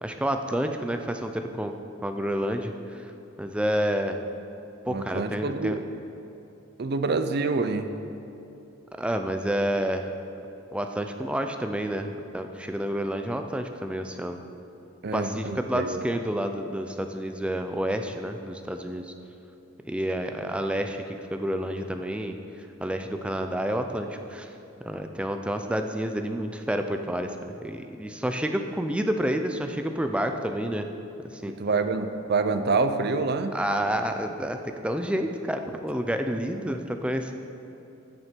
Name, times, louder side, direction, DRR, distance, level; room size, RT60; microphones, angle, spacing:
voice 1, 0.0-1.7 2.0-3.1 3.4-4.2 4.9-5.8 9.0-10.1 10.7-14.4 15.1-19.1 19.8-24.5 24.8-30.9 31.3-31.5 33.5-37.3, equal, 5° right, 5 dB, 0.5 m, -29 dB
voice 2, 4.9-5.8 6.8-7.9 15.0-16.0 31.5-33.5, right 3 dB, 50° right, 9 dB, 0.5 m, -27 dB
15.0 x 6.5 x 4.5 m, 2.9 s
head